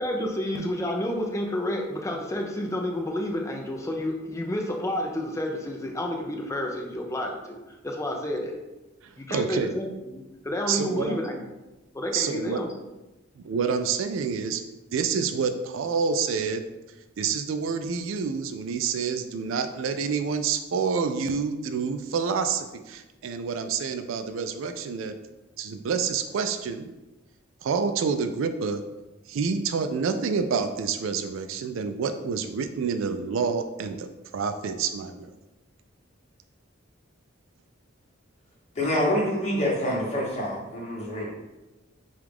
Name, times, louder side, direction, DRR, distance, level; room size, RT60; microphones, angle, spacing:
voice 1, 0.0-8.6 9.2-11.4 11.9-12.7, left 1 dB, 15° left, 1 dB, 0.4 m, -30 dB
voice 2, 9.3-9.7 10.7-11.2 12.1-12.6 13.4-14.6 14.9-16.6 17.2-25.1 25.6-26.9 27.6-28.8 29.3-34.1 34.3-35.3, right 5 dB, 80° right, 8 dB, 0.4 m, -28 dB
voice 3, 38.7-41.3, left 1 dB, 35° left, -5 dB, 1.3 m, -26 dB
4.8 x 2.4 x 3.6 m, 1.0 s
head